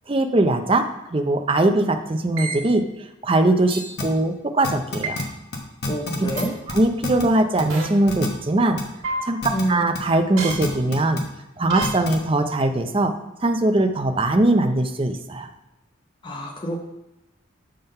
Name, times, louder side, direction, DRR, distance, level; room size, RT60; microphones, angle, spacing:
voice 1, 0.1-0.9 1.1-2.8 3.2-5.2 6.7-8.8 9.2-9.4 9.7-11.2 11.6-13.1 13.4-15.5, right 2 dB, 25° right, 6 dB, 0.5 m, -21 dB
sound 1, 2.4-2.6 3.7-3.9 5.0-5.2 6.4-6.5 7.7-7.9 9.0-9.2 10.4-10.5 11.7-11.9, right 3 dB, 80° right, 1.7 m, -27 dB
sound 2, 4.0-4.1 4.6-5.2 5.5-5.6 5.8-6.4 6.7-7.2 7.6-7.7 8.1-8.3 8.8-8.9 9.4-9.6 9.9-10.0 10.5-11.2 11.8-12.2, left 3 dB, 55° left, 1.1 m, -28 dB
voice 2, 5.9-6.5 9.5-9.8 16.2-16.8, right 1 dB, 25° left, 1 dB, 0.6 m, -27 dB
7.1 x 3.8 x 5.3 m, 0.96 s
head